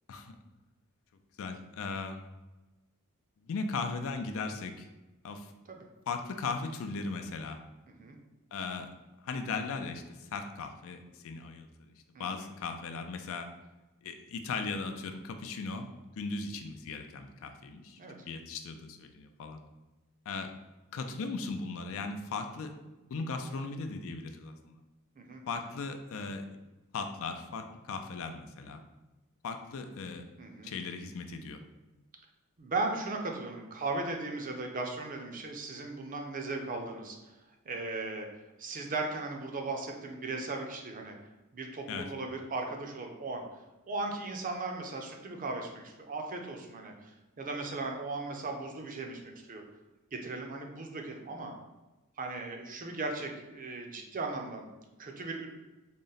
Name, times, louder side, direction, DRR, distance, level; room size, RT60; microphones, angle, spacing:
voice 1, 1.4-2.2 3.4-4.9 5.2-5.5 6.1-7.6 8.5-8.9 9.2-11.7 12.2-13.5 14.0-15.9 16.2-19.6 20.3-20.5 20.9-22.7 23.1-24.8 25.5-26.5 26.9-28.8 29.4-30.2 30.6-31.6 41.9-42.1, left 4 dB, 65° left, 7 dB, 0.4 m, -37 dB
voice 2, 12.1-12.5 18.0-18.2 25.2-25.4 30.4-30.7 32.6-37.2 37.7-38.3 38.6-41.2 41.5-43.4 43.9-49.6 50.1-51.5 52.2-54.7 55.0-55.5, right 3 dB, 40° right, 3 dB, 0.5 m, -37 dB
3.8 x 2.1 x 3.9 m, 1.1 s
head